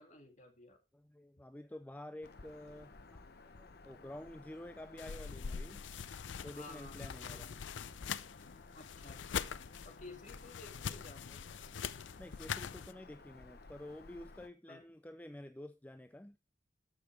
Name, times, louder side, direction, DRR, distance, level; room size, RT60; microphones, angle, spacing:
voice 1, 0.0-0.8 6.4-7.6 8.7-9.6 9.8-11.4 14.7-14.8, left 2 dB, 40° left, 2.3 m, -54 dB
voice 2, 0.9-3.2 3.6-5.8 6.4-7.5 11.3-11.4 12.2-16.4, left 1 dB, 10° left, 0.4 m, -50 dB
Bird vocalization bird call bird song, 2.2-14.5, left 3 dB, 55° left, 0.9 m, -56 dB
sound 1, 5.0-12.9, left 7 dB, 75° left, 0.5 m, -43 dB
13.0 x 6.3 x 3.4 m
head